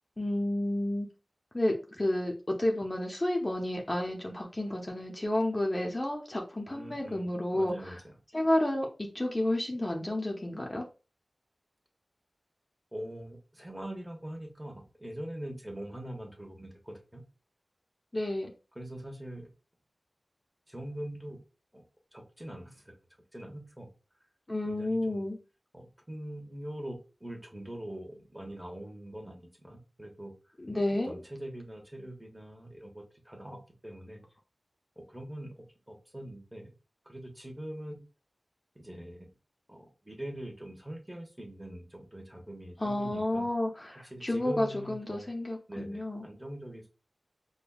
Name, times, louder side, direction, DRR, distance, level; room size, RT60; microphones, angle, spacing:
voice 1, 0.2-1.1 1.5-7.9 8.3-10.8 18.1-18.5 24.5-25.4 30.6-31.1 42.8-46.3, left 1 dB, 25° left, 0 dB, 0.7 m, -31 dB
voice 2, 6.7-8.1 12.9-17.2 18.7-19.5 20.7-21.4 21.7-21.8 22.1-22.9 23.3-23.9 24.6-25.3 25.7-30.3 31.0-34.2 35.0-35.5 35.9-36.7 37.0-38.1 38.7-39.3 39.7-43.5 44.0-45.3 45.7-46.9, right 1 dB, 10° right, 0 dB, 1.1 m, -43 dB
5.0 x 2.2 x 2.3 m, 0.32 s
wide cardioid pair, 55°, 0 cm